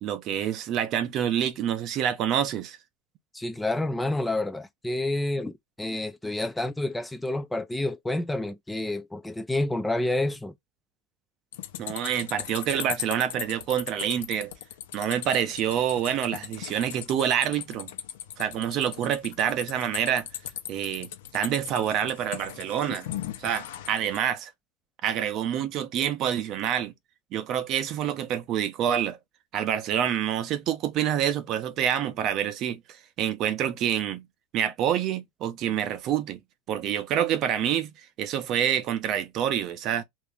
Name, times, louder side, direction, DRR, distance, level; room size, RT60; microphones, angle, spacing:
voice 1, 0.0-2.8 11.8-14.5 14.9-17.9 18.4-20.3 20.7-23.1 23.4-24.5 25.0-26.9 27.3-29.2 29.5-32.8 33.2-34.3 34.5-36.4 36.7-37.9 38.2-40.0, right 9 dB, 40° right, 0.6 m, -27 dB
voice 2, 3.3-10.5, left 2 dB, 5° left, 0.4 m, -29 dB
sound 1, 11.5-24.2, left 11 dB, 80° left, 0.8 m, -38 dB
2.8 x 2.6 x 3.4 m
supercardioid pair, 135°, 0 cm